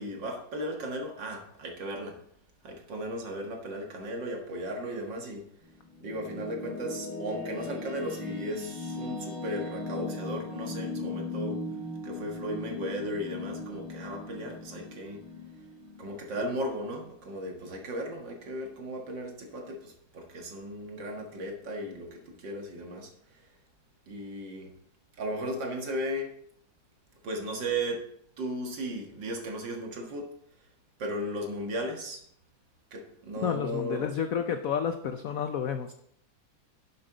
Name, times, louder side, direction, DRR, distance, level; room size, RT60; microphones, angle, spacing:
voice 1, 0.0-2.2 2.6-5.5 6.0-11.6 12.0-15.2 16.0-23.5 24.1-24.7 25.2-26.3 27.2-28.1 28.4-30.3 31.0-32.2 32.9-34.1, right 1 dB, 60° right, 2 dB, 2.3 m, -36 dB
sound 1, 5.6-16.9, left 2 dB, 85° right, 3.6 m, -38 dB
voice 2, 33.4-35.9, left 8 dB, 85° left, 7 dB, 0.7 m, -30 dB
10.0 x 7.8 x 3.9 m, 0.70 s
omnidirectional pair, 2.3 m